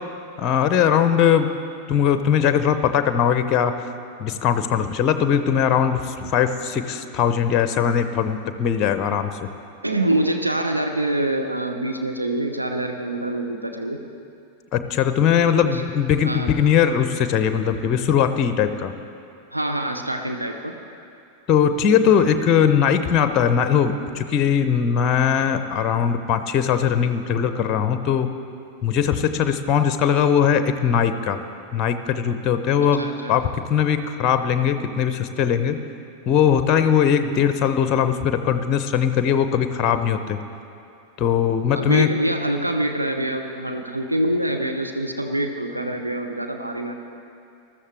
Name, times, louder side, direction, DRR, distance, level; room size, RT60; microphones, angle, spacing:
voice 1, 0.4-1.5 1.9-3.7 4.2-9.3 14.7-18.9 21.5-28.3 28.8-31.4 31.7-35.8 36.3-40.4 41.2-42.1, left 8 dB, 35° left, 10 dB, 0.7 m, -20 dB
voice 2, 9.8-14.0 15.5-15.8 16.2-16.5 19.5-20.7 32.9-33.3 41.7-46.9, right 1 dB, 85° right, 4 dB, 0.8 m, -25 dB
20.0 x 13.0 x 3.4 m, 2.5 s
figure-of-eight pair, 90°, 0 cm